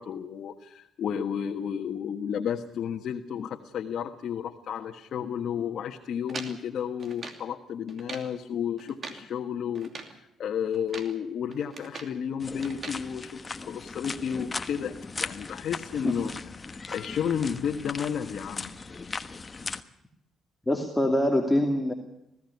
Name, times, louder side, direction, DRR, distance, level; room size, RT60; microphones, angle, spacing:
voice 1, 0.0-16.3 16.7-18.7, left 8 dB, 65° left, 2 dB, 1.5 m, -32 dB
sound 1, 6.3-7.5 7.9-8.3 8.8-9.3 9.7-10.2 10.7-11.2 11.5-12.2 12.6-13.0, right 4 dB, 45° right, 2.8 m, -42 dB
sound 2, 12.4-19.8, left 4 dB, 30° left, 1.3 m, -38 dB
voice 2, 20.7-21.9, left 1 dB, 10° left, 2 dB, 2.4 m, -24 dB
20.0 x 16.0 x 9.5 m, 0.84 s
cardioid pair, 90°, 0 cm